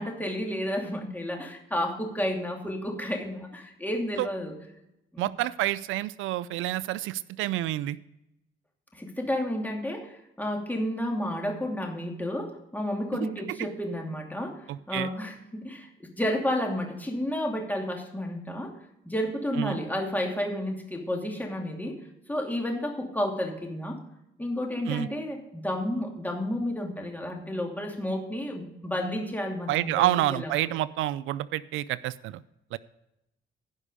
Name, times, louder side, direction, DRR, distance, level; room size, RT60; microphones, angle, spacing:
voice 1, 0.0-4.5 5.1-5.3 8.9-18.7 19.0-22.0 22.3-24.0 24.4-30.8, left 1 dB, 10° left, 1 dB, 2.6 m, -31 dB
voice 2, 5.2-8.0 14.7-15.1 19.6-19.8 24.9-25.1 29.7-32.4 32.7-32.8, right 15 dB, 90° right, 18 dB, 0.4 m, -28 dB
16.0 x 5.5 x 4.9 m, 0.85 s
cardioid pair, 90°, 20 cm